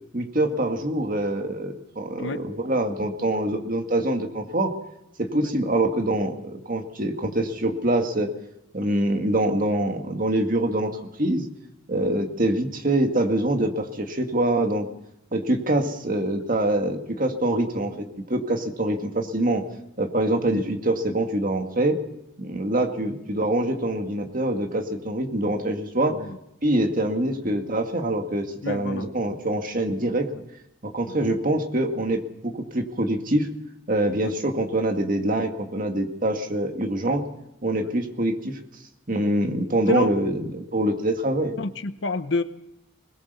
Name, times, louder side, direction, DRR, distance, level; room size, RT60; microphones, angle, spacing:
voice 1, 0.1-4.7 5.2-8.3 8.7-10.9 11.2-11.5 11.9-14.9 15.3-19.6 20.0-22.0 22.4-26.2 26.6-30.3 30.8-33.5 33.9-37.2 37.6-38.6 39.1-41.5, right 1 dB, 45° right, 4 dB, 2.0 m, -25 dB
voice 2, 26.0-26.4 28.6-29.1 34.2-34.3 39.9-40.1 41.6-42.4, left 3 dB, 65° left, 11 dB, 1.0 m, -28 dB
21.0 x 20.0 x 6.9 m, 0.84 s
head